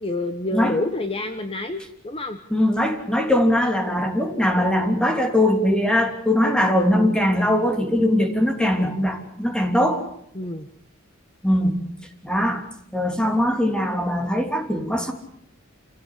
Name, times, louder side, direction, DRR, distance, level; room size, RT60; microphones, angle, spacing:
voice 1, 0.0-2.4 10.3-10.7, left 2 dB, 25° left, 8 dB, 1.2 m, -28 dB
voice 2, 2.5-10.0 11.4-11.9 12.2-12.6 12.9-15.1, left 1 dB, 5° left, 4 dB, 3.1 m, -21 dB
28.0 x 17.0 x 8.4 m, 0.73 s
head